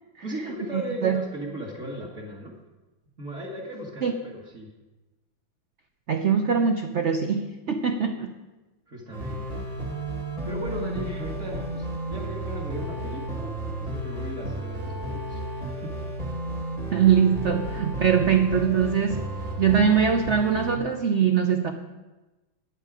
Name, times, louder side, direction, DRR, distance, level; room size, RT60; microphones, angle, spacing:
voice 1, 0.2-2.5 3.2-4.7 8.9-9.7 10.4-15.9, equal, 40° right, -1 dB, 2.1 m, -36 dB
voice 2, 0.7-1.2 4.0-4.1 6.1-8.3 16.9-19.3 19.6-21.7, right 7 dB, 65° right, 5 dB, 0.7 m, -22 dB
sound 1, 9.1-20.8, right 1 dB, 20° right, 1.7 m, -33 dB
15.0 x 9.7 x 4.9 m, 1.1 s
omnidirectional pair, 2.2 m